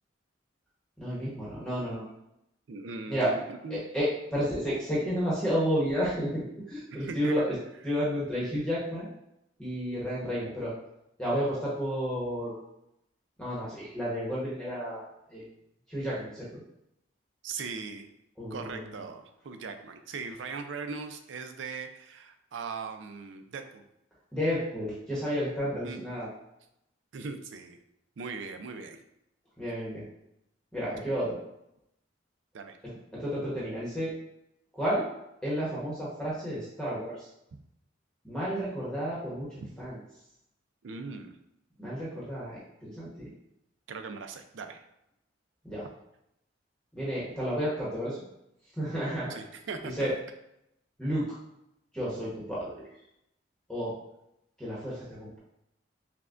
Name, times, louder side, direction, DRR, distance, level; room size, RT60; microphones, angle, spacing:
voice 1, 1.0-2.0 3.1-3.3 3.7-7.5 7.8-9.1 9.6-10.7 11.2-12.5 13.4-15.4 15.9-16.6 18.4-18.9 24.3-26.3 29.6-30.0 30.7-31.4 33.1-34.1 34.7-35.0 35.4-37.3 38.2-40.0 41.8-43.3 45.6-45.8 46.9-48.2 48.8-49.3 50.0-50.1 51.0-51.3 51.9-52.9 53.7-53.9 54.6-55.4, equal, 5° left, -8 dB, 1.0 m, -31 dB
voice 2, 2.7-3.8 6.9-7.5 17.4-18.1 18.5-23.8 25.6-26.0 27.1-27.8 28.2-29.0 32.5-32.8 37.5-37.6 40.8-41.3 43.9-44.8 49.3-50.1, right 4 dB, 75° right, 7 dB, 0.4 m, -39 dB
5.8 x 2.2 x 2.4 m, 0.82 s
head